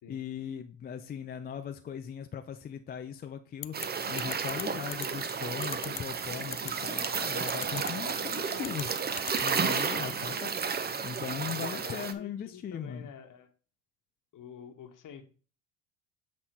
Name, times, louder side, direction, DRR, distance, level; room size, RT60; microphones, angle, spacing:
voice 1, 0.1-3.8 4.1-8.9 9.4-10.5 11.0-13.1, left 8 dB, 20° left, 7 dB, 0.4 m, -39 dB
sound 1, 3.6-3.9 4.2-4.6 4.9-5.1 5.6-6.0 6.5-6.7 7.5-7.9 8.6-8.8 9.2-9.6, left 22 dB, 90° left, 0.6 m, -37 dB
sound 2, 3.7-12.1, right 6 dB, 20° right, 0.6 m, -32 dB
voice 2, 10.0-10.4 11.6-13.5 14.3-15.2, left 7 dB, 40° left, 7 dB, 1.3 m, -48 dB
7.9 x 4.2 x 4.3 m, 0.40 s
supercardioid pair, 95°, 48 cm